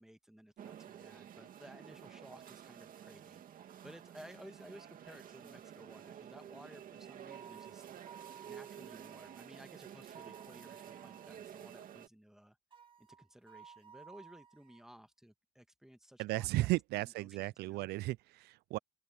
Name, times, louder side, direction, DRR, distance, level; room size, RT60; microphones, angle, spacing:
voice 1, 0.0-7.9 8.4-12.6 13.0-17.9, equal, 5° right, 1.6 m, -57 dB
sound 1, 0.6-12.1, right 9 dB, 55° right, 2.3 m, -51 dB
sound 2, 7.3-9.4 10.1-11.4 12.7-14.9, right 7 dB, 30° right, 2.1 m, -56 dB
voice 2, 16.2-18.8, right 19 dB, 75° right, 0.4 m, -35 dB
open air
cardioid pair, 110°, 17 cm